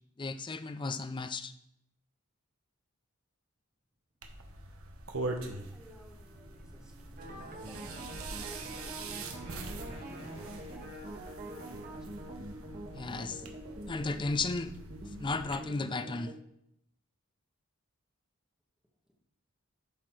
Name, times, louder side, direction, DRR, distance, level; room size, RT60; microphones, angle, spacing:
voice 1, 0.2-1.5 12.9-13.4 13.9-14.7 15.2-16.3, left 3 dB, 20° left, 11 dB, 0.4 m, -34 dB
sound 1, 4.2-15.6, right 2 dB, 80° right, 1.1 m, -43 dB
sound 2, 4.7-11.6, right 1 dB, 30° right, 1.8 m, -53 dB
voice 2, 5.6-6.9 7.6-8.9 9.5-12.1, equal, 5° right, -1 dB, 1.5 m, -57 dB
sound 3, 7.2-16.3, right 1 dB, 45° right, 1.3 m, -45 dB
11.5 x 4.3 x 4.7 m, 0.76 s
head